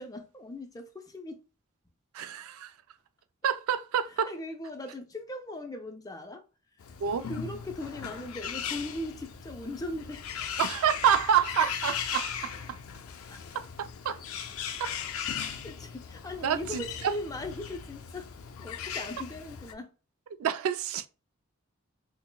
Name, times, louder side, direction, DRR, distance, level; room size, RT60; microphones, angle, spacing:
voice 1, 0.0-1.4 4.1-6.4 7.3-10.3 13.3-13.4 15.4-18.3 18.6-19.9, left 1 dB, 15° left, 0.4 m, -39 dB
voice 2, 2.1-2.7 3.4-4.3 7.0-7.3 10.6-12.8 13.5-14.2 14.8-14.9 16.4-16.8 20.4-21.1, right 8 dB, 80° right, 0.3 m, -28 dB
Bird, 6.8-19.7, left 7 dB, 80° left, 0.4 m, -38 dB
5.8 x 2.0 x 2.2 m
head